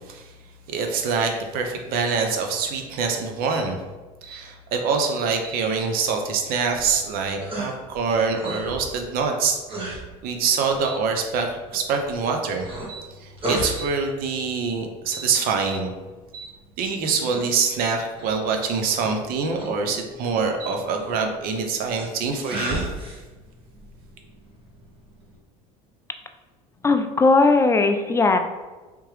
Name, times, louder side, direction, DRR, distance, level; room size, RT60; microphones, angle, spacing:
voice 1, 0.7-3.8 4.2-15.9 16.3-16.5 16.8-22.9, right 5 dB, 60° right, 4 dB, 0.7 m, -25 dB
sound 1, 6.7-25.4, right 2 dB, 30° right, 1.1 m, -37 dB
voice 2, 26.8-28.4, left 3 dB, 15° left, 6 dB, 0.4 m, -18 dB
3.5 x 2.9 x 3.2 m, 1.2 s
supercardioid pair, 85°, 17 cm